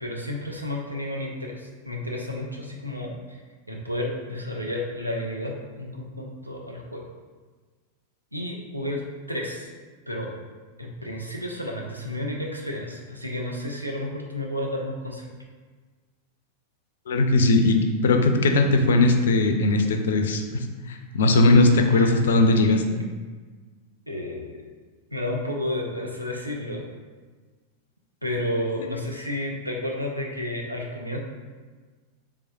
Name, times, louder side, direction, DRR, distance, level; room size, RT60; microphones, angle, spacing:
voice 1, 0.0-3.1 3.7-7.0 8.3-9.7 10.1-10.3 10.8-15.3 21.9-22.1 24.1-24.7 25.1-26.8 28.2-31.2, left 1 dB, 90° right, -1 dB, 0.5 m, -31 dB
voice 2, 17.1-23.0 28.8-28.9, left 2 dB, 60° left, 5 dB, 0.4 m, -19 dB
3.4 x 3.4 x 2.6 m, 1.4 s
figure-of-eight pair, 90°, 0 cm